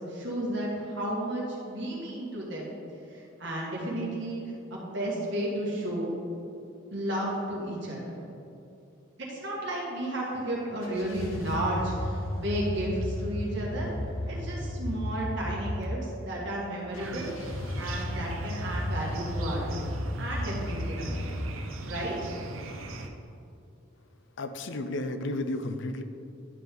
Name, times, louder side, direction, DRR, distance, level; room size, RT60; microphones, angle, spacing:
voice 1, 0.0-2.7 3.1-4.4 4.7-6.1 6.9-8.1 9.2-13.9 14.3-16.0 16.2-19.9 20.2-21.4 21.9-22.3, right 1 dB, 60° right, -4 dB, 1.9 m, -33 dB
sound 1, 10.8-15.8 16.9-21.3, left 1 dB, 90° left, 1.0 m, -34 dB
sound 2, 17.0-23.1, right 2 dB, 85° right, 0.7 m, -40 dB
voice 2, 24.4-26.0, left 2 dB, 65° left, 9 dB, 0.5 m, -32 dB
11.0 x 5.2 x 3.9 m, 2.6 s
head